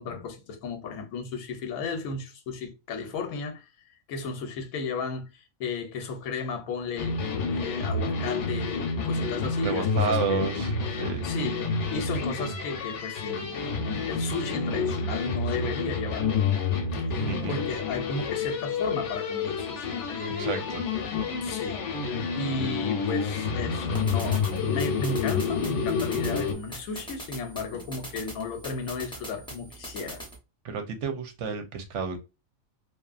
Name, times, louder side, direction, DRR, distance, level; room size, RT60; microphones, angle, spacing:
voice 1, 0.0-3.7 4.1-7.2 7.5-10.4 11.2-16.3 17.1-20.7 21.4-30.2, left 4 dB, 90° left, 1.0 m, -34 dB
sound 1, 7.0-26.5, left 4 dB, 65° left, 0.9 m, -29 dB
voice 2, 9.6-11.3 12.4-12.5 17.3-17.6 20.4-20.8 30.6-32.2, right 5 dB, 70° right, 0.9 m, -31 dB
sound 2, 23.9-30.4, right 1 dB, 5° left, 0.6 m, -42 dB
2.7 x 2.4 x 2.4 m
omnidirectional pair, 1.4 m